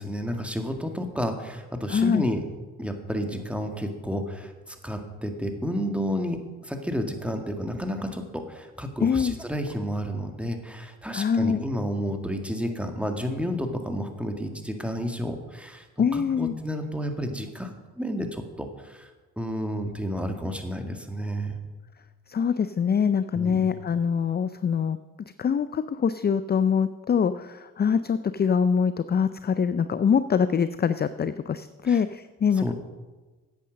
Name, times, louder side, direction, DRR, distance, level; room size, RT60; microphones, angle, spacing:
voice 1, 0.0-2.4 2.8-15.9 16.1-19.1 19.4-21.6 23.3-23.7 31.8-32.0 32.6-32.7, equal, 5° right, 5 dB, 1.9 m, -31 dB
voice 2, 1.9-2.3 9.0-9.3 11.1-11.6 16.0-16.5 22.3-25.0 25.4-32.7, left 6 dB, 25° left, 13 dB, 0.5 m, -24 dB
10.0 x 8.3 x 6.4 m, 1.3 s
hypercardioid pair, 50°, 38 cm